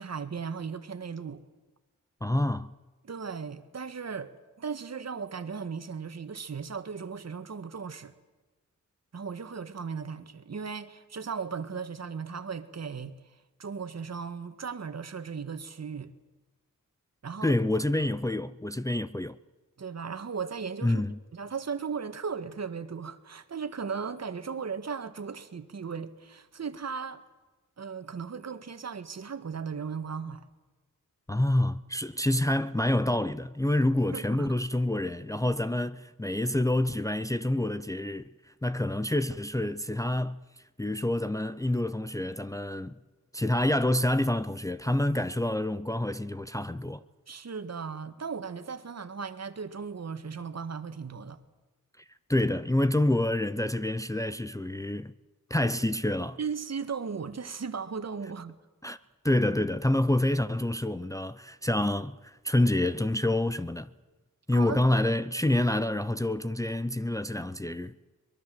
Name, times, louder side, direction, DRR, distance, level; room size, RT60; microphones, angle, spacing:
voice 1, 0.0-1.4 3.0-8.1 9.1-13.2 13.6-16.1 17.2-17.6 19.8-21.0 21.3-27.2 27.8-30.4 34.1-34.6 47.3-51.4 56.4-58.6 64.5-64.8, right 6 dB, 55° right, 1.7 m, -37 dB
voice 2, 2.2-2.7 17.4-19.4 20.8-21.2 31.3-38.2 38.6-40.4 40.8-43.0 43.3-47.0 52.0-52.1 52.3-55.1 55.5-56.4 58.8-59.0 59.2-63.9 64.5-68.0, left 1 dB, 10° left, 0.7 m, -27 dB
23.5 x 22.0 x 7.8 m
wide cardioid pair, 100°, 32 cm